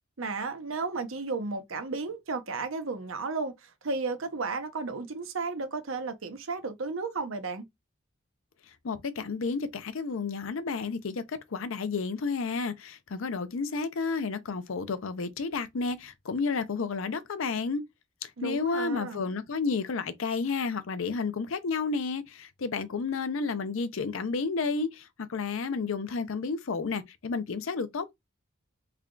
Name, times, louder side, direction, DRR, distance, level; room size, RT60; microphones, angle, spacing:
voice 1, 0.2-7.6 18.4-19.2, right 4 dB, 75° right, 0.8 m, -33 dB
voice 2, 8.8-17.8 18.2-28.1, left 4 dB, 70° left, 0.5 m, -31 dB
3.3 x 2.3 x 3.7 m
head